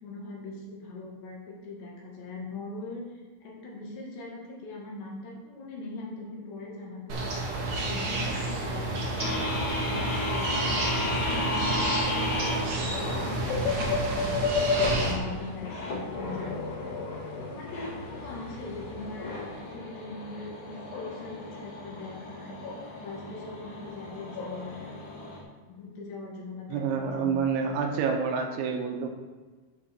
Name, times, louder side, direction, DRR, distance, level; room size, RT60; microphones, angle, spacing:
voice 1, 0.0-3.0 3.4-7.2 7.8-14.5 15.0-17.0 17.5-22.6 22.9-24.9 25.7-27.5, left 3 dB, 70° left, -3 dB, 4.3 m, -41 dB
sound 1, 7.1-15.1, right 2 dB, 50° right, 3.1 m, -30 dB
sound 2, 8.5-19.8, left 3 dB, 90° left, 4.1 m, -47 dB
sound 3, 9.2-25.4, left 2 dB, 45° left, 3.1 m, -33 dB
voice 2, 26.7-29.1, right 6 dB, 85° right, 3 dB, 3.4 m, -28 dB
9.7 x 5.4 x 7.0 m, 1.3 s
omnidirectional pair, 5.4 m